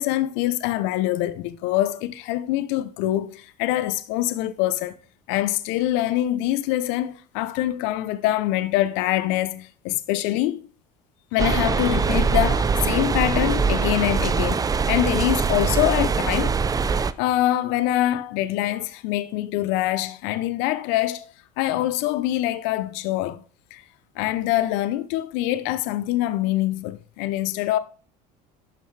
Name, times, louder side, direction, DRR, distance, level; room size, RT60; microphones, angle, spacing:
voice 1, 0.0-4.9 5.3-10.6 11.3-16.5 16.8-23.4 23.7-23.8 24.2-27.8, left 14 dB, 70° left, 0.6 m, -24 dB
sound 1, 11.4-17.1, right 5 dB, 20° right, 0.4 m, -22 dB
11.5 x 5.4 x 3.2 m
supercardioid pair, 90°, 19 cm